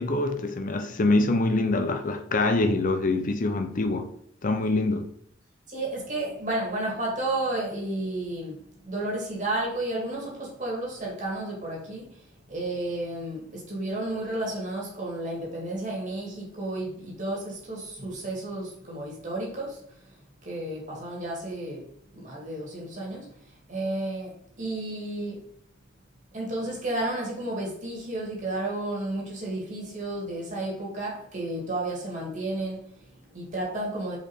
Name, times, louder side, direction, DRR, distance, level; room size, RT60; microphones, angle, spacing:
voice 1, 0.0-4.1 4.4-5.1, left 2 dB, 45° left, 0.6 m, -25 dB
voice 2, 5.7-12.2 12.5-20.0 20.4-21.9 22.1-23.3 23.7-25.4 26.3-34.2, right 2 dB, 40° right, 2.3 m, -32 dB
5.2 x 4.7 x 4.4 m
head